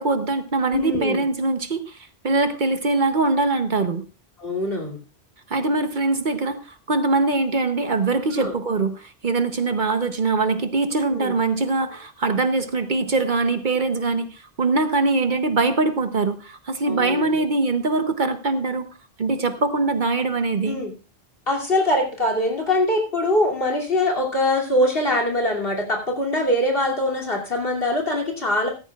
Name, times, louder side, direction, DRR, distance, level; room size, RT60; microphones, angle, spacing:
voice 1, 0.0-4.0 5.5-18.9 19.2-20.8, right 3 dB, 50° right, 9 dB, 1.0 m, -22 dB
voice 2, 0.7-1.3 4.4-5.0 8.3-8.5 11.1-11.3 16.9-17.4 20.7-20.9 21.5-28.7, left 1 dB, 60° left, 0 dB, 3.0 m, -23 dB
15.5 x 13.5 x 2.4 m, 0.32 s
omnidirectional pair, 1.1 m